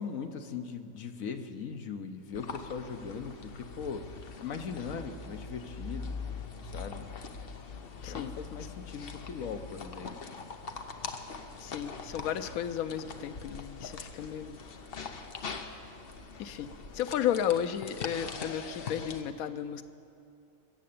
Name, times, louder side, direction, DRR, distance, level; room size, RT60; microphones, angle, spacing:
voice 1, 0.0-4.1 4.4-6.2 6.7-7.1 8.1-10.1, left 6 dB, 75° left, 7 dB, 1.3 m, -39 dB
sound 1, 2.3-19.2, left 5 dB, 50° left, 1.0 m, -42 dB
voice 2, 8.0-8.3 11.6-14.6 16.4-16.7 16.9-19.8, left 9 dB, 90° left, 12 dB, 1.1 m, -33 dB
21.5 x 7.7 x 8.6 m, 2.6 s
omnidirectional pair, 1.4 m